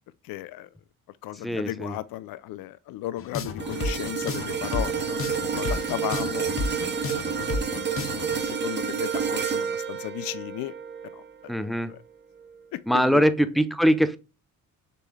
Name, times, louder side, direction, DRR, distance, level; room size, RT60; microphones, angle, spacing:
voice 1, 0.2-0.7 1.2-6.5 7.1-7.6 8.0-10.7 11.0-11.2 11.8-12.0 12.7-13.3, left 15 dB, 75° left, 0.5 m, -35 dB
voice 2, 1.4-1.9 11.5-11.9 12.9-14.2, equal, ahead, 0.4 m, -22 dB
sound 1, 3.2-8.4, left 3 dB, 40° left, 0.7 m, -32 dB
sound 2, 3.6-11.9 12.4-12.6, right 6 dB, 30° right, 0.7 m, -30 dB
6.8 x 3.1 x 2.2 m
cardioid pair, 90°, 35 cm